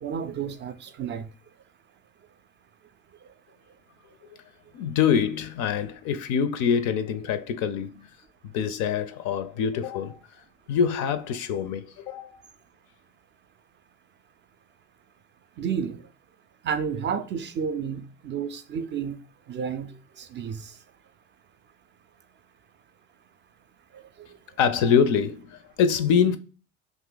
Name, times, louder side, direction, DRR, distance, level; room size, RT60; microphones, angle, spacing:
voice 1, 0.0-1.3 15.6-16.1 16.6-19.2 19.5-19.9 20.2-20.7 23.9-24.0, right 7 dB, 30° right, 0.4 m, -31 dB
voice 2, 4.7-8.1 8.5-10.2 10.7-12.4 24.6-26.4, left 7 dB, 50° left, 0.5 m, -25 dB
2.7 x 2.5 x 3.6 m
hypercardioid pair, 65°, 38 cm